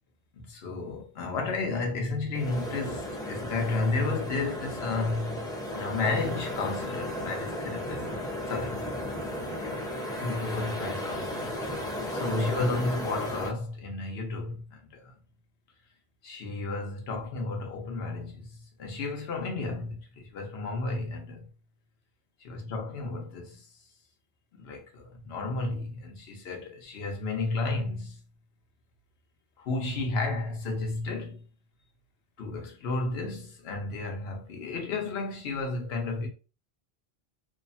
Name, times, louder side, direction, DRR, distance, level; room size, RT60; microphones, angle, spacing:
voice 1, 0.3-5.4 5.7-8.1 8.5-8.8 9.6-11.5 11.8-15.1 16.2-18.5 18.8-21.4 22.4-23.7 24.6-28.2 29.6-31.4 32.4-36.3, left 3 dB, 80° left, 1.0 m, -32 dB
sound 1, 2.3-13.5, left 1 dB, 5° left, 0.5 m, -34 dB
3.0 x 2.0 x 2.6 m
omnidirectional pair, 1.1 m